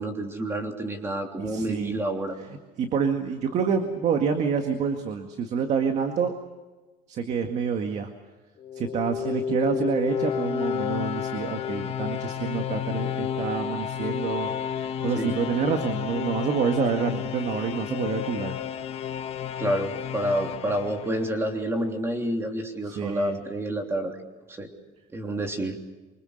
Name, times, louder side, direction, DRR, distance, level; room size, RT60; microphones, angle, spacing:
voice 1, 0.0-2.4 15.2-15.3 19.6-24.2 24.5-24.7 25.1-25.8, right 1 dB, 15° right, 3 dB, 3.2 m, -29 dB
voice 2, 1.4-2.0 2.5-6.3 7.1-8.1 8.7-18.6 22.8-23.4, right 6 dB, 40° right, 5 dB, 2.0 m, -27 dB
sound 1, 8.6-21.6, left 8 dB, 35° left, 1.2 m, -31 dB
26.5 x 25.0 x 6.6 m, 1.2 s
cardioid pair, 175°, 18 cm